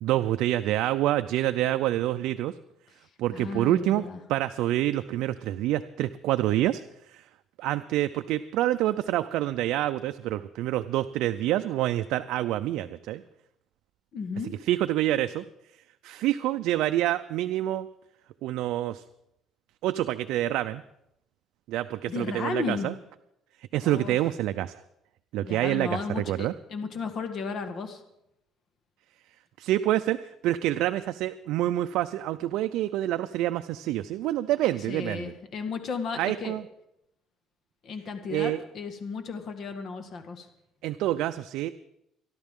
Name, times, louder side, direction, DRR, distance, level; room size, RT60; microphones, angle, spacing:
voice 1, 0.0-2.5 3.2-4.0 4.3-7.3 7.6-13.2 14.7-15.5 16.0-17.9 18.4-19.0 19.8-20.8 21.7-22.9 23.7-24.8 25.3-26.5 29.6-35.3 36.2-36.6 38.3-38.6 40.8-41.7, right 14 dB, 75° right, 9 dB, 0.5 m, -27 dB
voice 2, 3.3-4.2 14.1-14.5 22.1-22.9 23.8-24.2 25.4-28.0 34.9-36.6 37.8-40.5, left 5 dB, 45° left, 7 dB, 1.6 m, -34 dB
27.0 x 11.5 x 3.7 m, 0.81 s
cardioid pair, 135°, 0 cm